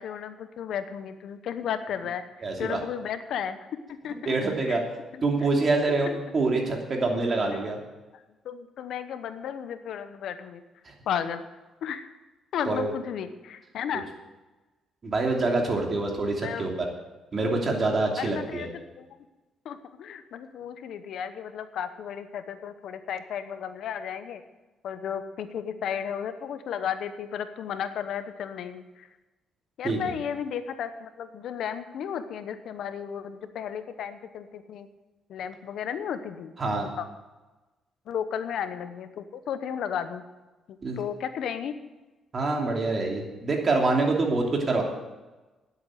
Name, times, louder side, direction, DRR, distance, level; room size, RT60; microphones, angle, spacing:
voice 1, 0.0-2.2 2.6-4.3 4.6-4.8 5.1-5.2 6.1-6.2 7.3-7.8 8.1-10.6 11.1-11.4 11.8-12.1 12.5-14.1 16.4-16.7 18.2-19.1 19.6-24.4 24.8-29.1 29.8-34.9 35.3-36.5 36.8-37.1 38.1-40.2 40.7-41.7, left 8 dB, 75° left, 10 dB, 1.0 m, -34 dB
voice 2, 2.4-2.8 4.3-4.8 5.2-6.1 6.3-7.8 10.8-10.9 12.7-12.9 15.0-16.9 17.3-18.7 29.8-30.0 36.6-36.9 40.8-41.0 42.3-44.8, right 3 dB, 40° right, 1 dB, 2.9 m, -25 dB
10.5 x 8.3 x 8.0 m, 1.1 s
cardioid pair, 90°, 0 cm